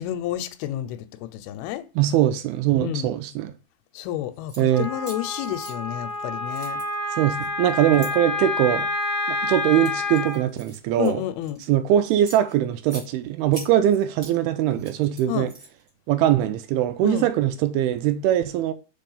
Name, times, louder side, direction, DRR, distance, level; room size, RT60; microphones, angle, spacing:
voice 1, 0.0-1.9 2.8-3.1 3.9-6.8 11.0-11.6 15.3-15.5 17.0-17.3, left 13 dB, 85° left, 2.5 m, -30 dB
voice 2, 2.0-3.5 4.6-4.9 7.2-8.9 9.3-11.2 11.7-15.5 16.1-18.7, right 11 dB, 85° right, 2.5 m, -22 dB
sound 1, 4.3-4.6 5.0-6.2 6.5-8.1 8.8-9.1 9.6-11.7 12.1-13.1 13.5-14.4 14.7-15.9, right 1 dB, 35° right, 1.4 m, -43 dB
Wind instrument woodwind instrument, 4.7-10.4, left 2 dB, 15° left, 1.9 m, -28 dB
5.5 x 5.0 x 5.4 m
omnidirectional pair, 4.5 m